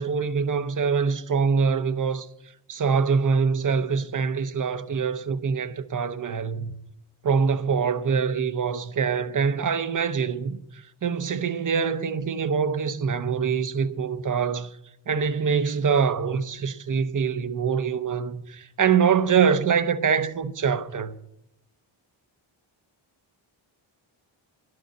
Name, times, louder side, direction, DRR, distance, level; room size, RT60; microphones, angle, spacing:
voice 1, 0.0-2.3 2.7-6.7 7.2-14.7 15.1-21.1, right 6 dB, 40° right, 0.7 m, -24 dB
11.0 x 6.6 x 9.2 m
wide cardioid pair, 110°, 49 cm